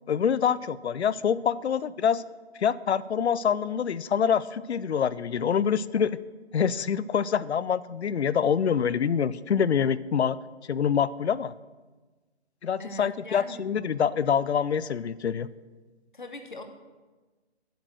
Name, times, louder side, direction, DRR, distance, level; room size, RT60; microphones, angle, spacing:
voice 1, 0.1-2.2 2.6-6.2 6.5-10.4 10.7-11.5 12.6-15.5, left 7 dB, 70° left, 19 dB, 0.5 m, -25 dB
voice 2, 12.8-13.6 16.1-16.6, left 2 dB, 45° left, 7 dB, 1.0 m, -40 dB
7.9 x 6.6 x 6.3 m, 1.3 s
hypercardioid pair, 180°, 34 cm